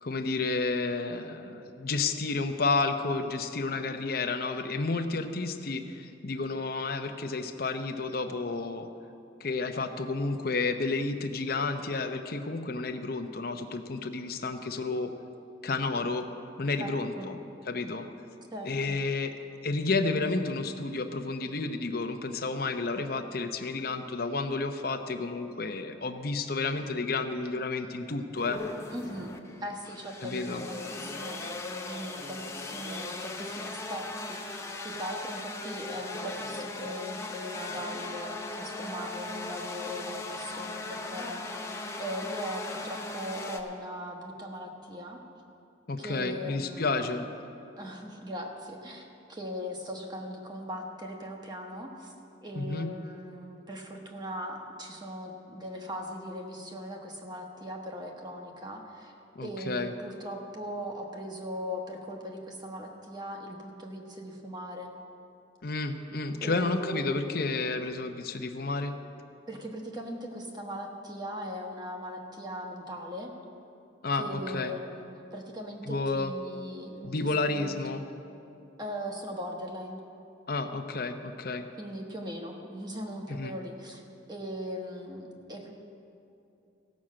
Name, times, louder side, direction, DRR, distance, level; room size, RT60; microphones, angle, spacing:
voice 1, 0.0-8.9 9.4-15.1 15.6-16.3 16.6-17.4 17.7-18.1 18.7-19.3 19.6-28.6 30.2-30.6 45.9-47.3 52.5-52.9 59.4-59.9 65.6-68.9 74.0-74.7 75.9-76.3 77.0-78.0 80.5-81.7 83.3-83.6, left 3 dB, 50° left, 6 dB, 0.7 m, -31 dB
voice 2, 16.8-17.3 18.5-19.0 28.9-29.3 29.6-45.2 46.0-47.3 47.8-52.1 52.4-59.1 59.4-64.9 66.4-67.2 69.5-73.3 74.2-77.8 78.8-80.0 81.8-84.0 84.3-85.7, equal, 20° right, 1 dB, 1.2 m, -39 dB
sound 1, 28.4-43.6, left 2 dB, 15° left, 0.6 m, -38 dB
16.0 x 6.3 x 7.5 m, 2.7 s
head